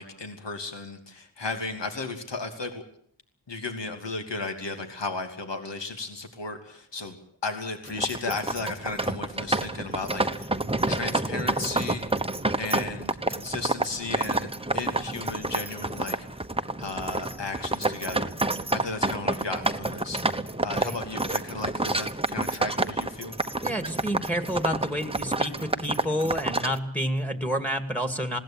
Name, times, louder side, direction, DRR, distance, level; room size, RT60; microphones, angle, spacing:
voice 1, 0.0-2.8 3.5-7.2 7.4-10.5 10.9-12.0 12.6-16.2 16.8-18.3 18.7-20.2 20.6-23.4, left 3 dB, 65° left, 5 dB, 2.8 m, -34 dB
sound 1, 7.9-26.8, right 2 dB, 10° right, 1.1 m, -29 dB
voice 2, 23.6-28.4, equal, 5° left, 8 dB, 2.3 m, -29 dB
20.5 x 17.5 x 8.8 m, 0.63 s
wide cardioid pair, 60°, 46 cm